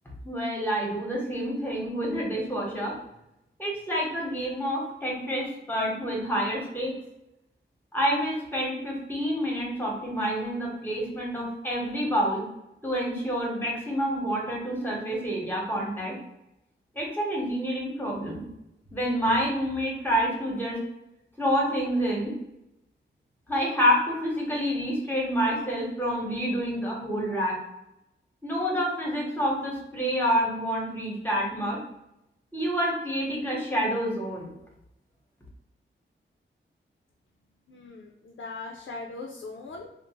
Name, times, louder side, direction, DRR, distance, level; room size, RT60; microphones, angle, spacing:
voice 1, 0.2-2.9 3.6-7.0 7.9-12.4 12.8-16.2 16.9-18.4 18.9-20.8 21.4-22.3 23.5-27.6 28.4-31.8 32.5-34.5, equal, 10° left, -2 dB, 0.9 m, -28 dB
voice 2, 37.7-39.9, left 3 dB, 70° left, 0 dB, 0.5 m, -40 dB
2.5 x 2.1 x 2.9 m, 0.87 s
wide cardioid pair, 75°, 21 cm